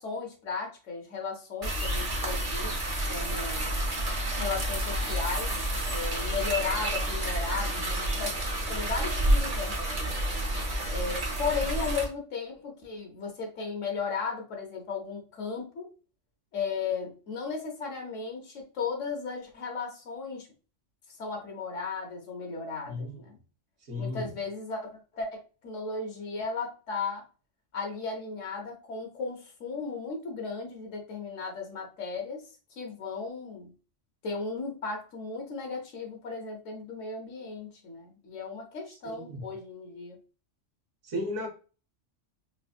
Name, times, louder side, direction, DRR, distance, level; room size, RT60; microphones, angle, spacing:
voice 1, 0.0-2.8 3.1-3.7 4.4-5.6 5.9-8.3 8.7-10.1 10.9-15.9 16.5-20.5 21.2-23.4 24.0-27.2 27.7-32.4 32.8-33.7 34.2-40.2, left 5 dB, 80° left, 1 dB, 1.3 m, -35 dB
sound 1, 1.6-12.0, right 1 dB, 35° right, 0.9 m, -29 dB
voice 2, 22.9-23.2 23.9-24.3 39.0-39.5 41.0-41.5, left 1 dB, 80° right, 2 dB, 1.4 m, -34 dB
4.0 x 2.6 x 2.3 m, 0.35 s
omnidirectional pair, 1.3 m